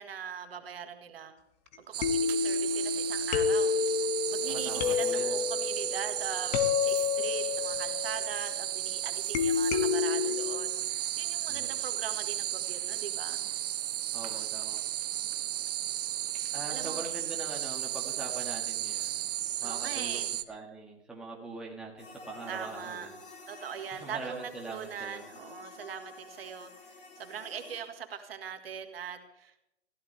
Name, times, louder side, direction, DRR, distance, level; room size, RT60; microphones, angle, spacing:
voice 1, 0.0-1.3 1.8-3.7 4.3-13.4 16.7-17.0 19.6-20.3 22.5-23.1 23.5-26.7 27.2-29.6, right 8 dB, 55° right, 6 dB, 2.0 m, -41 dB
sound 1, 1.7-1.8 2.0-8.8 9.3-10.6, left 6 dB, 35° left, 1.6 m, -30 dB
sound 2, 1.9-20.4, right 12 dB, 35° right, 0.7 m, -34 dB
voice 2, 4.5-5.4 11.5-11.7 14.1-14.8 16.5-19.3 19.6-23.1 23.9-25.3, right 3 dB, ahead, -2 dB, 1.9 m, -42 dB
sound 3, 22.0-27.8, left 3 dB, 20° left, 2.2 m, -50 dB
20.0 x 15.5 x 3.4 m, 0.82 s
figure-of-eight pair, 135°, 35 cm